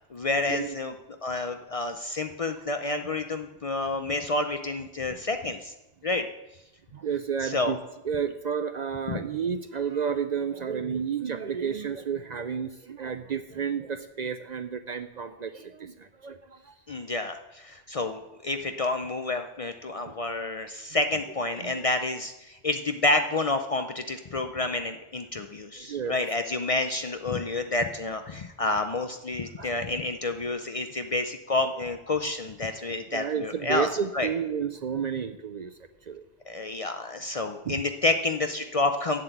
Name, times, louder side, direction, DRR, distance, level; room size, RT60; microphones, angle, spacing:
voice 1, 0.1-0.9 1.2-5.7 6.0-6.3 7.4-7.7 9.1-9.2 16.9-33.9 34.1-34.3 36.5-39.2, left 2 dB, 45° left, 7 dB, 0.5 m, -29 dB
voice 2, 6.9-7.8 8.0-16.8 20.1-20.2 20.9-21.0 21.5-21.8 25.8-26.2 27.3-27.4 29.4-29.8 32.2-32.3 32.9-36.2 37.6-37.8, right 7 dB, 55° right, 10 dB, 0.5 m, -32 dB
7.9 x 7.5 x 7.9 m, 0.97 s
omnidirectional pair, 1.1 m